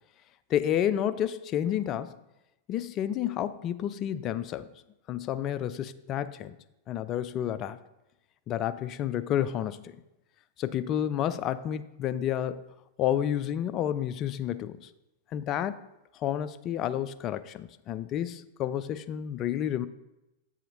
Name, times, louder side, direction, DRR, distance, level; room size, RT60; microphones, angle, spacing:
voice 1, 0.5-2.1 2.7-4.7 5.1-6.6 6.9-7.8 8.5-9.9 10.6-12.6 13.0-14.9 15.3-15.8 16.1-19.9, left 10 dB, 40° left, 14 dB, 0.3 m, -30 dB
7.7 x 5.0 x 3.9 m, 0.94 s
hypercardioid pair, 100°, 0 cm